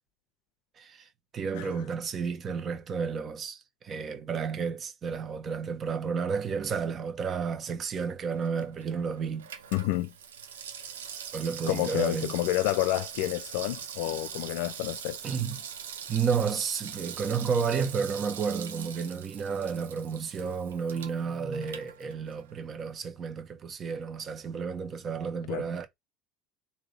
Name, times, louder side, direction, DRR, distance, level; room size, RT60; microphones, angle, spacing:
voice 1, 0.8-9.5 11.3-12.3 15.2-15.6 16.1-25.9, right 6 dB, 40° right, 1.1 m, -32 dB
Water tap faucet / Sink (filling or washing), 8.3-22.6 22.9-23.0, right 8 dB, 85° right, 0.7 m, -42 dB
voice 2, 9.7-10.1 11.7-15.2 25.5-25.7, left 16 dB, 70° left, 0.3 m, -29 dB
3.6 x 2.8 x 3.3 m
hypercardioid pair, 80°, 0 cm